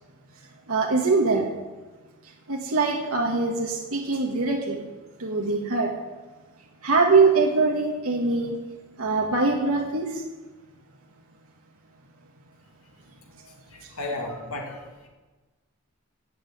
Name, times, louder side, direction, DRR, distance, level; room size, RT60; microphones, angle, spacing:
voice 1, 0.7-1.5 2.5-4.8 5.2-5.9 6.8-8.5 9.0-10.2, right 3 dB, 80° right, 0 dB, 1.6 m, -23 dB
voice 2, 13.5-15.1, left 2 dB, 85° left, 0 dB, 2.7 m, -35 dB
13.0 x 7.4 x 9.4 m, 1.3 s
head